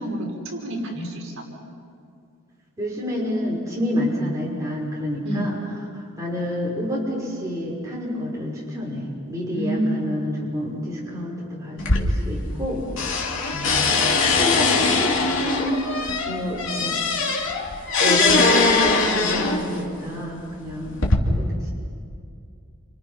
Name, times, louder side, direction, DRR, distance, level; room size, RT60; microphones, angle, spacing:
voice 1, 0.0-1.4 5.2-5.5 9.5-10.1, right 1 dB, 65° right, -2 dB, 6.2 m, -28 dB
voice 2, 2.8-5.6 5.9-12.8 13.5-14.0 14.3-17.0 18.0-21.7, equal, 15° right, -5 dB, 5.8 m, -28 dB
sound 1, 11.8-12.7 13.0-19.8 20.5-21.2, left 3 dB, 60° left, 2.9 m, -21 dB
29.0 x 28.5 x 5.8 m, 2.4 s
head